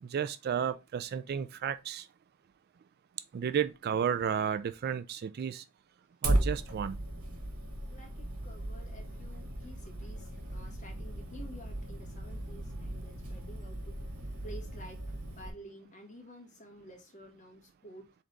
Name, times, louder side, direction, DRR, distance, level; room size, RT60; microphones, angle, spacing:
voice 1, 0.0-2.1 3.3-5.6 6.2-7.0, right 7 dB, 45° right, 0.3 m, -32 dB
Fire, 6.2-15.5, right 1 dB, 90° right, 1.3 m, -36 dB
voice 2, 7.9-18.1, equal, 35° left, 1.7 m, -52 dB
4.1 x 3.8 x 3.3 m
head